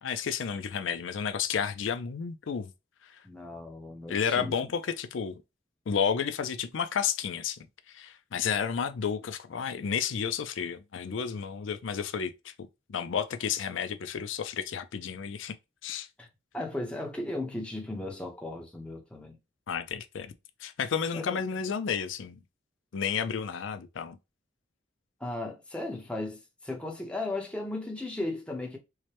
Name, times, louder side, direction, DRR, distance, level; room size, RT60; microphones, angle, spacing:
voice 1, 0.0-2.7 4.1-5.3 5.9-7.6 7.9-12.5 12.9-15.5 15.8-16.1 19.7-20.3 20.6-22.4 22.9-24.2, left 7 dB, 85° left, 0.4 m, -31 dB
voice 2, 3.2-4.7 16.2-16.3 16.5-19.4 21.1-21.4 25.2-28.8, left 2 dB, 5° left, 0.8 m, -36 dB
4.7 x 2.1 x 2.9 m
head